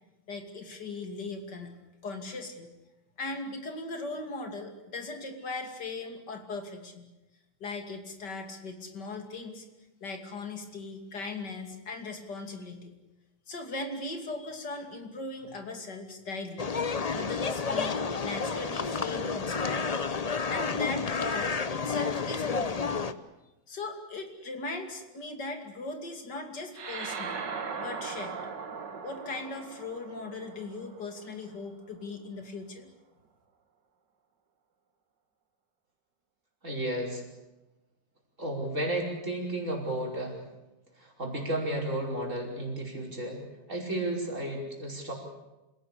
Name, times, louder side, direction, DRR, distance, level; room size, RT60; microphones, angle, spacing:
voice 1, 0.3-1.7 2.0-2.7 3.2-7.0 7.6-9.7 10.0-12.9 13.5-16.7 17.1-19.9 20.5-23.1 23.7-27.3 27.8-28.4 29.0-32.9, left 3 dB, 65° left, 5 dB, 3.3 m, -38 dB
sound 1, 16.6-23.1, left 5 dB, 40° left, 0.5 m, -30 dB
sound 2, 26.7-31.5, right 5 dB, 70° right, 2.3 m, -39 dB
voice 2, 36.6-37.3 38.4-40.4 41.0-43.4 43.7-45.1, right 1 dB, 40° right, 0 dB, 5.5 m, -33 dB
27.5 x 17.0 x 8.5 m, 1.0 s
omnidirectional pair, 2.0 m